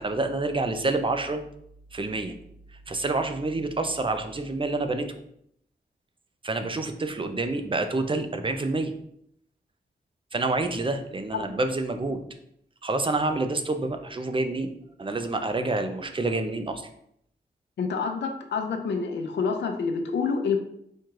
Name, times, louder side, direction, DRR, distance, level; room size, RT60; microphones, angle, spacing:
voice 1, 0.0-1.4 1.9-2.4 2.7-5.1 6.4-8.9 10.3-12.2 12.8-14.7 15.0-16.9, right 2 dB, 30° right, 7 dB, 0.6 m, -28 dB
voice 2, 17.8-20.6, left 5 dB, 90° left, 4 dB, 0.6 m, -27 dB
4.4 x 2.4 x 4.6 m, 0.72 s
cardioid pair, 70°, 18 cm